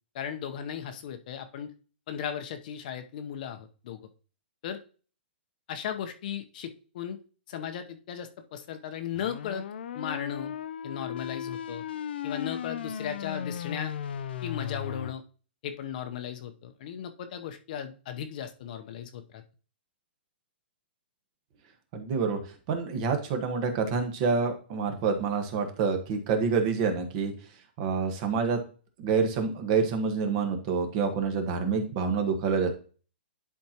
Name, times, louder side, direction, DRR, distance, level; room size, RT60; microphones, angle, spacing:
voice 1, 0.1-1.7 2.1-4.0 4.6-4.8 5.7-7.2 7.5-9.6 9.9-10.5 10.8-11.8 12.2-13.9 14.4-15.2 15.6-19.4, left 8 dB, 45° left, 7 dB, 0.8 m, -36 dB
sound 1, 9.1-15.1, left 9 dB, 65° left, 0.4 m, -36 dB
voice 2, 21.9-22.4 22.7-27.3 27.8-28.6 29.0-32.7, right 5 dB, 35° right, 5 dB, 1.3 m, -27 dB
10.5 x 4.4 x 2.9 m, 0.39 s
hypercardioid pair, 155°, 6 cm